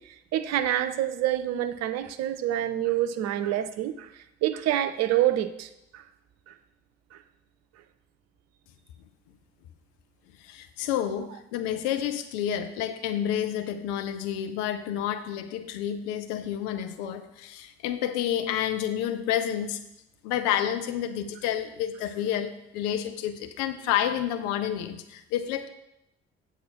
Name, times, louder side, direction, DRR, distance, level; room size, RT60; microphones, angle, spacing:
voice 1, 0.0-6.0 6.5-6.6, right 12 dB, 55° right, 10 dB, 0.7 m, -27 dB
voice 2, 10.4-19.8 20.2-25.7, left 10 dB, 70° left, 8 dB, 0.7 m, -29 dB
8.4 x 4.3 x 7.1 m, 0.85 s
figure-of-eight pair, 45°, 31 cm